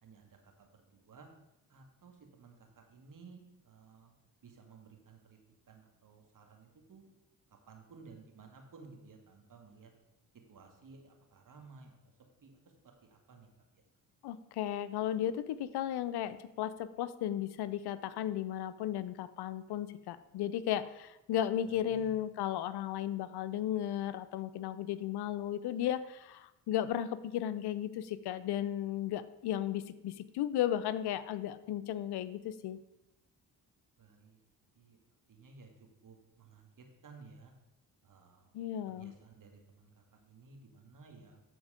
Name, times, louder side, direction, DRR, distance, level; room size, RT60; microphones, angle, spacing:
voice 1, 0.0-1.3 1.7-4.1 4.4-5.4 5.7-7.1 7.7-9.9 10.5-12.1 12.4-12.6 12.8-13.8 21.6-22.1 34.0-34.4 34.7-35.0 35.3-35.7 36.0-37.5 38.0-38.5 38.9-41.4, right 4 dB, 50° right, 3 dB, 2.1 m, -56 dB
voice 2, 14.2-32.8 38.5-39.1, left 11 dB, 70° left, 14 dB, 0.7 m, -35 dB
13.5 x 4.5 x 5.0 m, 0.91 s
supercardioid pair, 60°, 40 cm